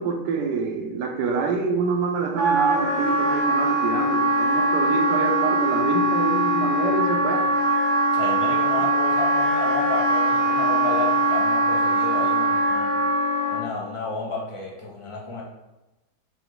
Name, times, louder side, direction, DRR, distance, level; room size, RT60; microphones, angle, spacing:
voice 1, 0.0-7.5, right 5 dB, 80° right, 4 dB, 1.2 m, -26 dB
Wind instrument woodwind instrument, 2.4-13.7, right 1 dB, 55° right, 0.7 m, -22 dB
voice 2, 8.1-12.9 13.5-15.4, left 3 dB, 35° left, -3 dB, 0.5 m, -32 dB
5.5 x 2.2 x 3.8 m, 1.0 s
omnidirectional pair, 1.8 m